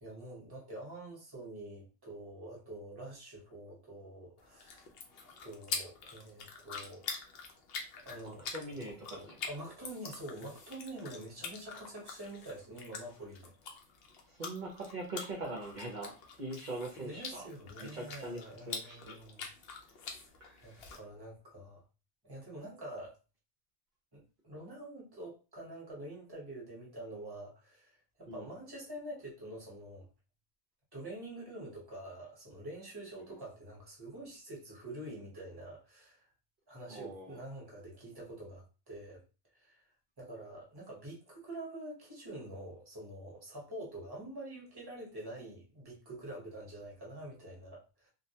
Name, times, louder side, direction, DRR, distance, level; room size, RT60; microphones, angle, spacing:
voice 1, 0.0-4.9 5.2-7.0 8.0-8.5 8.7-13.5 17.0-19.5 20.6-21.8 22.2-23.2 24.1-30.1 30.9-36.3 36.7-39.2 39.5-39.8 40.2-48.1, right 1 dB, 20° right, -3 dB, 0.9 m, -46 dB
sound 1, 4.4-21.0, left 4 dB, 65° left, 0.7 m, -45 dB
voice 2, 8.2-9.4 14.3-17.5 17.8-19.2 20.4-20.8 28.3-28.5 33.3-33.4 36.9-37.4, right 2 dB, 50° right, -2 dB, 0.6 m, -42 dB
2.3 x 2.1 x 2.7 m, 0.33 s
omnidirectional pair, 1.2 m